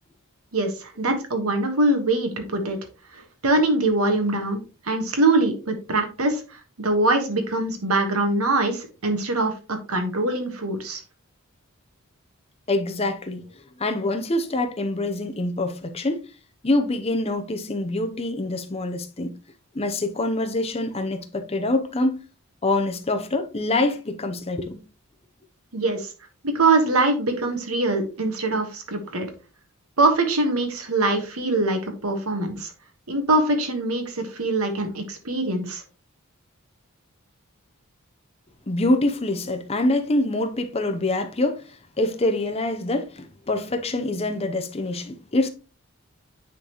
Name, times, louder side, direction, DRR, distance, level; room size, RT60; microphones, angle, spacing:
voice 1, 0.5-2.8 3.1-11.0 25.7-26.1 26.4-29.3 30.0-32.7 33.1-35.8, right 2 dB, 80° right, 1.5 m, -23 dB
voice 2, 12.7-13.5 13.8-16.2 16.6-19.4 19.7-22.2 22.6-24.8 38.7-45.5, left 2 dB, 25° left, 0.7 m, -25 dB
9.5 x 4.0 x 3.0 m
head